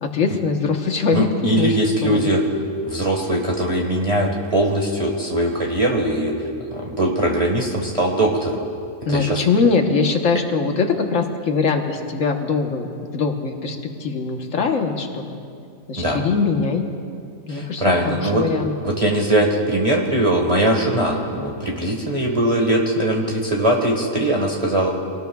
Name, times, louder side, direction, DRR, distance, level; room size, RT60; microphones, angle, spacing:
voice 1, 0.0-1.8 2.0-2.3 9.1-12.9 13.1-15.4 15.9-16.8 17.5-18.7, left 4 dB, 70° left, 4 dB, 1.5 m, -22 dB
voice 2, 1.1-2.4 2.8-6.3 6.7-8.6 9.1-9.4 16.0-16.3 17.5-18.4 18.8-24.9, right 1 dB, 25° right, -2 dB, 1.5 m, -20 dB
26.0 x 18.5 x 2.4 m, 2.4 s
omnidirectional pair, 1.4 m